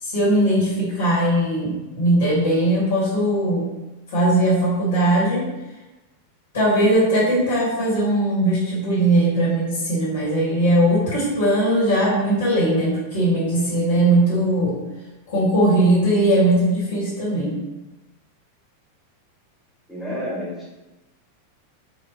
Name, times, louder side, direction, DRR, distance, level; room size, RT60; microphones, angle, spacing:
voice 1, 0.0-3.7 4.1-5.5 6.5-14.8 15.3-17.6, right 1 dB, 65° left, -7 dB, 1.2 m, -19 dB
voice 2, 19.9-20.7, equal, ahead, -7 dB, 1.1 m, -30 dB
3.3 x 2.1 x 2.3 m, 1.1 s
figure-of-eight pair, 90°, 0 cm